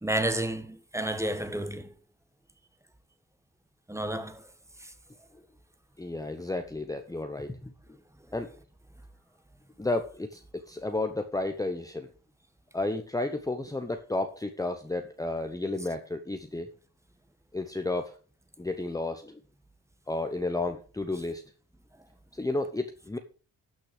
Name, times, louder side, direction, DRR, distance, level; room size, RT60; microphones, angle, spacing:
voice 1, 0.0-1.9 3.9-4.5 4.8-4.9, right 1 dB, 5° right, 1.4 m, -31 dB
voice 2, 6.0-7.7 8.3-8.5 9.8-12.1 12.7-16.7 17.5-18.1 18.6-19.4 20.1-21.4 22.3-23.2, left 2 dB, 10° left, 1.0 m, -32 dB
12.5 x 6.3 x 5.1 m
cardioid pair, 85°, 38 cm